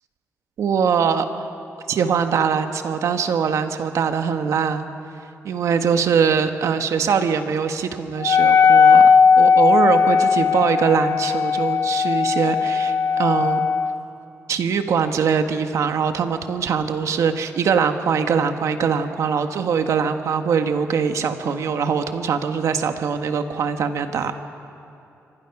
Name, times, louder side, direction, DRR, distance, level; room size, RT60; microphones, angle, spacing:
voice 1, 0.6-1.5 1.9-4.9 5.4-9.1 9.4-13.6 14.5-24.3, right 6 dB, 75° right, 7 dB, 1.5 m, -22 dB
Wind instrument woodwind instrument, 8.2-14.0, left 6 dB, 55° left, 0.7 m, -17 dB
27.0 x 25.0 x 6.0 m, 2.9 s
wide cardioid pair, 140°, 5 cm